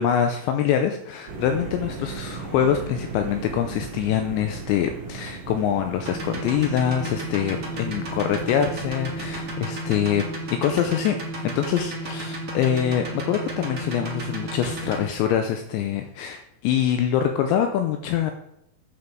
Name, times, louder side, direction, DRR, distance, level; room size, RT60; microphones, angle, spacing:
voice 1, 0.0-10.2 10.5-11.2 11.4-18.3, left 9 dB, 85° left, 6 dB, 2.7 m, -24 dB
sound 1, 1.3-9.5, right 5 dB, 40° right, 2.5 m, -37 dB
sound 2, 6.0-15.0, right 1 dB, 85° right, 0.7 m, -33 dB
8.8 x 7.8 x 4.5 m, 0.78 s
omnidirectional pair, 5.6 m